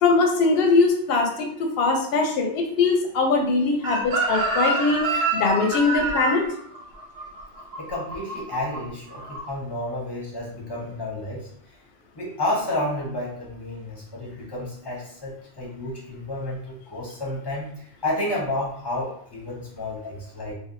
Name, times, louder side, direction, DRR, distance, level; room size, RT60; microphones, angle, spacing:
voice 1, 0.0-6.4, left 3 dB, 65° left, 2 dB, 0.7 m, -21 dB
Chicken rooster, 3.8-8.8 9.1-9.4, right 2 dB, 60° right, 0.9 m, -27 dB
voice 2, 7.8-11.5 12.2-20.6, left 1 dB, 25° left, -4 dB, 0.7 m, -31 dB
3.4 x 2.3 x 2.5 m, 0.66 s
omnidirectional pair, 1.2 m